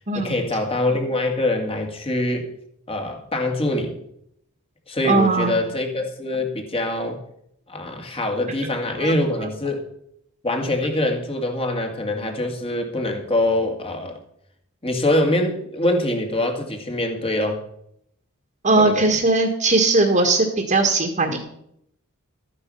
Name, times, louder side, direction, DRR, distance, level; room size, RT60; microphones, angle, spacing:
voice 1, 0.2-2.5 2.9-4.0 4.9-7.2 7.7-9.8 10.4-14.2 14.8-17.6 18.8-19.1, left 1 dB, 25° left, 3 dB, 2.3 m, -24 dB
voice 2, 5.0-5.5 9.0-9.1 18.6-21.4, right 3 dB, 40° right, 2 dB, 1.9 m, -19 dB
13.5 x 9.7 x 5.6 m, 0.73 s
head